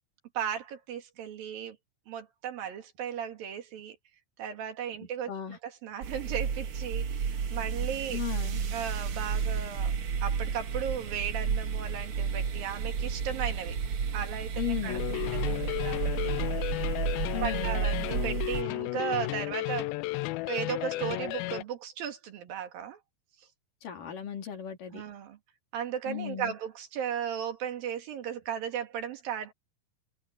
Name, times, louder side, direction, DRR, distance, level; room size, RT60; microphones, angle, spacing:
voice 1, 0.4-1.8 2.1-4.0 4.4-8.2 8.7-9.9 10.2-13.8 14.1-16.5 17.4-19.9 20.5-23.0 24.9-25.4 25.7-29.5, right 8 dB, 75° right, 3.8 m, -36 dB
sound 1, 6.0-18.6, right 6 dB, 55° right, 1.6 m, -32 dB
voice 2, 8.1-8.6 14.6-15.0 17.3-17.8 23.8-25.0 26.1-26.5, left 10 dB, 65° left, 4.8 m, -36 dB
sound 2, 14.9-21.6, left 20 dB, 85° left, 2.4 m, -33 dB
omnidirectional pair, 4.2 m